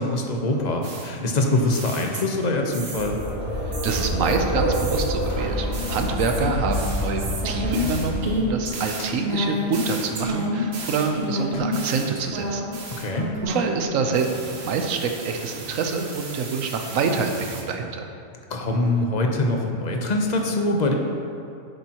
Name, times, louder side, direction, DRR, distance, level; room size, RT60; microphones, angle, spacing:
voice 1, 0.0-3.2 6.4-6.5 9.0-9.1 13.0-13.3 18.5-20.9, left 2 dB, 35° left, 2 dB, 0.9 m, -24 dB
sound 1, 0.8-2.4 2.7-3.3 3.7-13.8 14.1-17.6, left 1 dB, 55° right, 1.3 m, -31 dB
sound 2, 2.8-8.7, equal, 80° left, 2.3 m, -27 dB
voice 2, 3.6-12.7 13.4-18.1, right 4 dB, 80° right, 4 dB, 1.1 m, -26 dB
10.5 x 8.1 x 3.0 m, 2.6 s
omnidirectional pair, 1.4 m